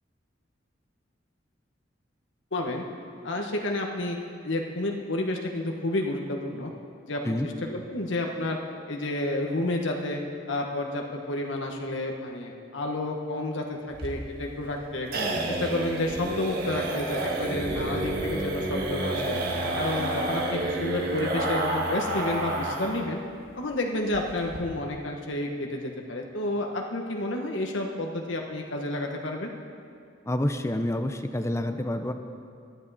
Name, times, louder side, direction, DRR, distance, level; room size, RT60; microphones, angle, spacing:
voice 1, 2.5-2.8 3.2-4.2 4.4-6.7 7.1-8.6 8.9-10.2 10.5-13.8 14.0-15.1 15.5-19.4 19.8-23.2 23.6-29.5, left 2 dB, 80° left, 1 dB, 1.2 m, -30 dB
sound 1, 13.9-23.0 23.3-23.4 23.7-23.8 24.1-24.6, right 1 dB, 55° right, 1.8 m, -29 dB
voice 2, 30.3-32.1, left 1 dB, 15° left, 7 dB, 0.7 m, -28 dB
23.5 x 10.0 x 4.2 m, 2.3 s
head